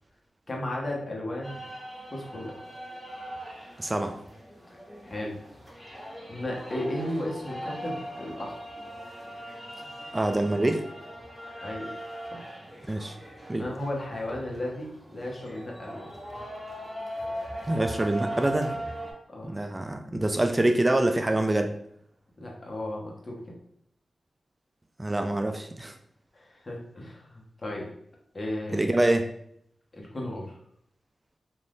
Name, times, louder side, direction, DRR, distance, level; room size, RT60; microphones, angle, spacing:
voice 1, 0.5-1.6 2.1-2.5 4.7-4.8 5.0-5.4 6.3-8.5 11.6-11.9 12.3-12.4 13.6-16.1 19.3-19.5 22.4-23.4 26.3-27.9 28.3-28.9 29.9-30.6, left 1 dB, 45° left, -2 dB, 1.0 m, -34 dB
sound 1, 1.4-19.1, right 1 dB, 15° left, 1.2 m, -40 dB
voice 2, 3.8-4.2 10.1-10.8 12.9-13.2 13.5-13.6 17.7-18.8 19.4-21.7 25.0-26.0 28.7-29.3, right 1 dB, 25° right, 6 dB, 0.3 m, -25 dB
2.5 x 2.4 x 3.4 m, 0.70 s
cardioid pair, 40°, 0 cm